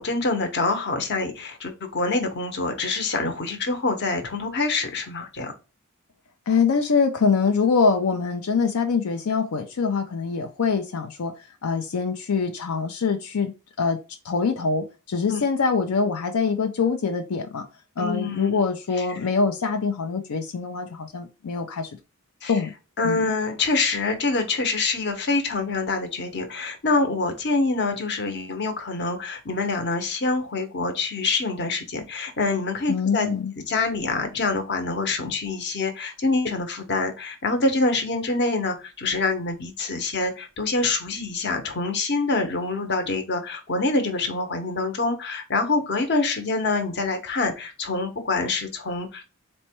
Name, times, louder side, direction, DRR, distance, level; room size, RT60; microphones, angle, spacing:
voice 1, 0.0-5.5 15.3-15.4 18.0-18.6 19.0-19.1 22.4-22.5 23.0-33.3 33.7-49.2, left 3 dB, 50° left, 6 dB, 0.9 m, -26 dB
voice 2, 6.5-14.0 14.2-17.7 18.0-22.0 22.5-22.7 23.0-23.3 32.9-33.5, left 5 dB, 85° left, 5 dB, 0.5 m, -24 dB
4.2 x 2.2 x 4.3 m, 0.30 s
head